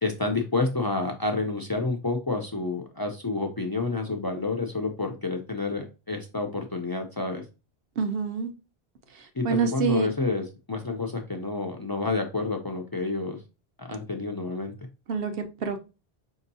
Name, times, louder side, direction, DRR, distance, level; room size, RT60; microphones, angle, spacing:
voice 1, 0.0-7.4 9.3-13.4 13.8-14.7, left 3 dB, 35° left, 0.3 m, -29 dB
voice 2, 8.0-8.5 9.4-10.1 15.1-15.3 15.6-15.8, right 5 dB, 65° right, 0.9 m, -26 dB
5.2 x 2.8 x 2.6 m
omnidirectional pair, 1.1 m